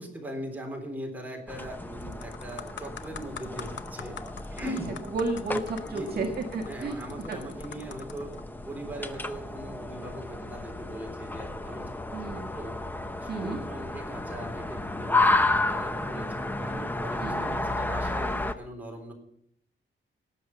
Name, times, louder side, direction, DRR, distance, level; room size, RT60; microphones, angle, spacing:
voice 1, 0.0-4.2 4.5-5.1 5.9-6.3 6.7-8.3 8.6-12.8 13.2-19.1, right 1 dB, 10° right, 1 dB, 3.6 m, -40 dB
sound 1, 1.4-1.6 2.0-8.4 9.1-9.3, left 8 dB, 60° left, 0.8 m, -44 dB
sound 2, 1.5-18.5, left 2 dB, 10° left, 0.7 m, -32 dB
voice 2, 5.1-7.0 7.3-7.4 12.1-12.5 13.3-13.6 17.2-17.6, right 3 dB, 50° right, 0 dB, 1.7 m, -32 dB
18.5 x 7.0 x 7.3 m, 0.70 s
wide cardioid pair, 165°, 21 cm